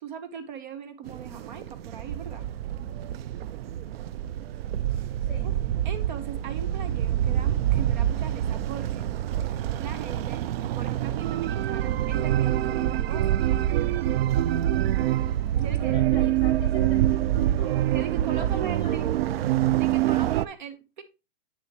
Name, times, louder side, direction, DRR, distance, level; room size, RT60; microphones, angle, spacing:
voice 1, 0.0-2.5 5.4-5.5 5.8-9.1 9.4-9.5 9.8-10.4 10.7-13.4 15.6-15.9 17.9-19.1 19.8-21.0, right 7 dB, 50° right, 1.0 m, -39 dB
sound 1, 1.1-20.4, right 12 dB, 80° right, 0.5 m, -26 dB
voice 2, 5.2-5.6 15.8-17.9 18.4-19.0, left 6 dB, 15° left, 3.0 m, -44 dB
9.3 x 6.7 x 3.0 m
supercardioid pair, 175°, 29 cm